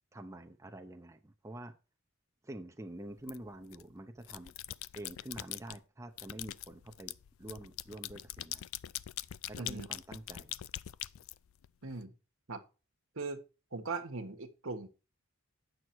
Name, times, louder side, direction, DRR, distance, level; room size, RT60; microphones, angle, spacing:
voice 1, 0.1-1.7 2.4-4.5 4.9-8.7 9.5-10.5, right 1 dB, 15° right, 0.7 m, -47 dB
sound 1, 3.3-3.8 4.2-5.8 6.2-11.9, left 13 dB, 75° left, 0.4 m, -43 dB
voice 2, 9.6-9.9 11.8-12.1 12.5-12.6 13.1-13.4 13.7-14.9, right 3 dB, 75° right, 1.4 m, -39 dB
9.0 x 6.3 x 4.6 m
head